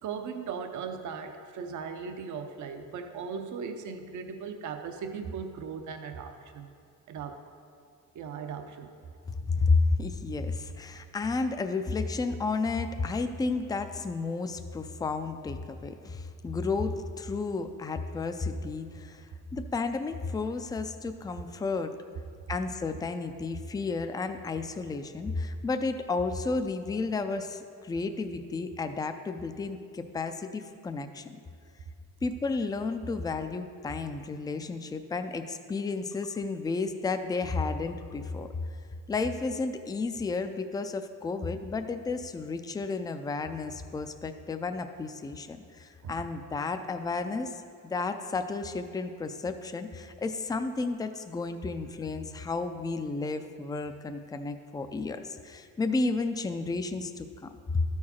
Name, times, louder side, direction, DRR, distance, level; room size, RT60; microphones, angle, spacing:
voice 1, 0.0-6.7 7.1-7.4 8.1-8.9 46.0-46.1, right 6 dB, 60° right, 6 dB, 0.7 m, -38 dB
voice 2, 9.3-22.0 22.5-31.3 32.2-38.5 39.1-49.9 50.2-57.8, left 3 dB, 10° left, 8 dB, 0.3 m, -32 dB
12.5 x 4.8 x 4.2 m, 2.2 s
cardioid pair, 105°, 34 cm